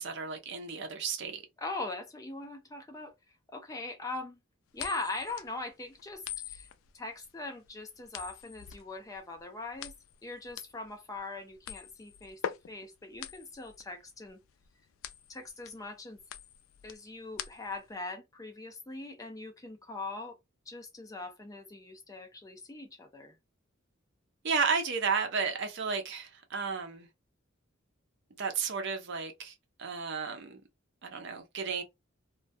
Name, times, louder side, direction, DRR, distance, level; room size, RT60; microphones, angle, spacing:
voice 1, 0.0-1.4 24.4-27.1 28.4-29.5 29.8-30.6 31.0-31.8, right 5 dB, 60° right, 0.6 m, -33 dB
voice 2, 1.6-3.1 3.5-4.4 4.7-6.7 6.9-9.9 10.2-14.4 15.3-16.2 16.8-20.4 20.7-23.4, left 2 dB, 15° left, 0.4 m, -41 dB
sound 1, 4.7-17.9, left 9 dB, 90° left, 0.3 m, -44 dB
2.2 x 2.2 x 2.6 m
head